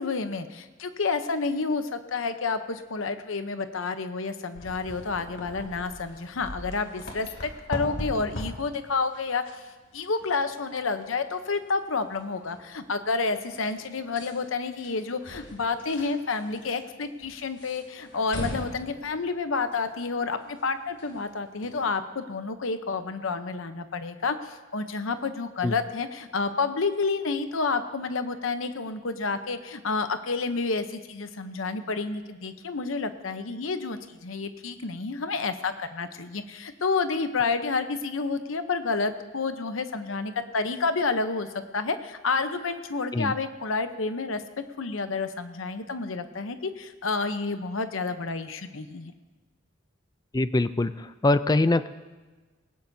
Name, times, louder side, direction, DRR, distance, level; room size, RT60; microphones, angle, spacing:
voice 1, 0.0-9.7 9.9-41.5 41.7-44.4 44.8-49.1, left 4 dB, 80° left, 9 dB, 0.8 m, -29 dB
sound 1, 4.5-21.9, equal, 60° left, 2.7 m, -42 dB
voice 2, 50.3-51.9, left 2 dB, 20° left, 13 dB, 0.4 m, -23 dB
19.5 x 18.0 x 2.7 m, 1.3 s
head